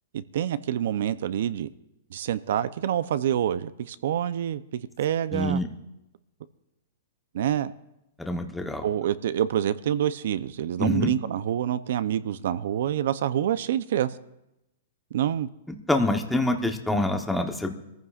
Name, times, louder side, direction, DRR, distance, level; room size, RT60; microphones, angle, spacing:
voice 1, 0.1-1.7 2.1-5.6 7.3-7.7 8.8-14.1 15.1-15.5, right 10 dB, 60° right, 0.6 m, -27 dB
voice 2, 5.3-5.7 8.2-8.8 10.8-11.1 15.9-17.7, left 1 dB, 5° left, 0.9 m, -26 dB
24.5 x 14.5 x 2.5 m
hypercardioid pair, 165°, 0 cm